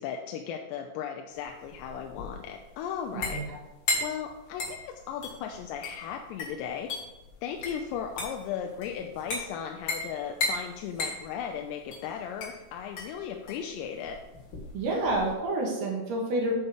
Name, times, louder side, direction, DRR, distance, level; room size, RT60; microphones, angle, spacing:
voice 1, 0.0-3.4 4.0-6.9 7.4-14.2, left 8 dB, 85° left, 3 dB, 2.7 m, -36 dB
sound 1, 1.4-15.3, left 2 dB, 50° left, 1.7 m, -36 dB
voice 2, 3.1-3.6 14.7-16.5, right 2 dB, 65° right, -2 dB, 2.7 m, -29 dB
9.4 x 7.1 x 3.6 m, 1.0 s
omnidirectional pair, 5.0 m